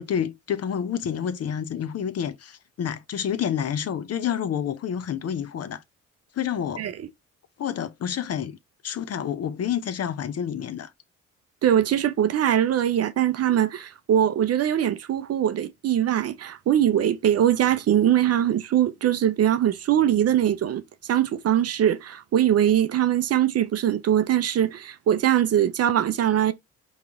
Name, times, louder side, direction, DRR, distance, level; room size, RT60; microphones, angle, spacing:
voice 1, 0.0-5.8 6.3-6.8 7.6-8.6 8.8-10.9, left 8 dB, 45° left, 0.6 m, -29 dB
voice 2, 11.6-20.8 21.1-26.5, right 10 dB, 45° right, 0.5 m, -22 dB
3.9 x 2.9 x 3.5 m
hypercardioid pair, 45°, 34 cm